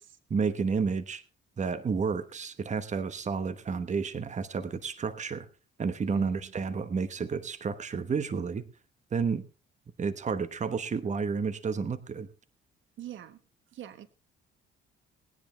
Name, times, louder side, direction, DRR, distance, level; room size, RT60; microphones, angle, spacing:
voice 1, 0.3-1.2 1.6-5.5 5.8-8.6 9.1-9.4 10.0-12.3, right 5 dB, 35° right, 12 dB, 1.1 m, -31 dB
voice 2, 6.0-6.5 13.0-13.4 13.7-14.1, right 11 dB, 75° right, 12 dB, 1.3 m, -43 dB
19.5 x 10.5 x 3.3 m, 0.32 s
cardioid pair, 90°, 20 cm